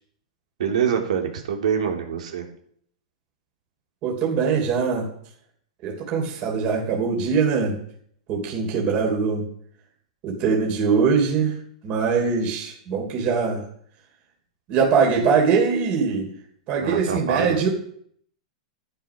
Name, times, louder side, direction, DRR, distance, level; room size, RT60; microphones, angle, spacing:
voice 1, 0.6-2.4 16.8-17.6, right 7 dB, 80° right, 3 dB, 3.1 m, -25 dB
voice 2, 4.0-5.1 5.8-7.7 8.3-9.4 10.2-11.6 11.8-13.6 14.7-16.3 16.7-17.7, right 5 dB, 35° right, 0 dB, 3.4 m, -22 dB
12.5 x 10.5 x 6.1 m, 0.63 s
supercardioid pair, 155°, 4 cm